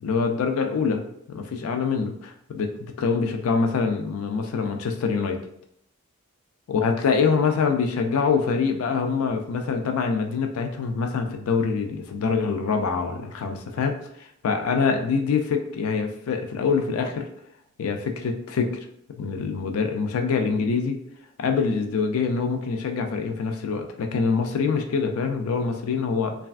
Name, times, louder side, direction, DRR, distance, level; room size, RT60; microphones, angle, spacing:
voice 1, 0.0-5.4 6.7-17.3 17.8-18.7 19.2-21.0 21.4-26.3, left 5 dB, 90° left, 5 dB, 0.4 m, -25 dB
3.2 x 2.3 x 2.3 m, 0.71 s
head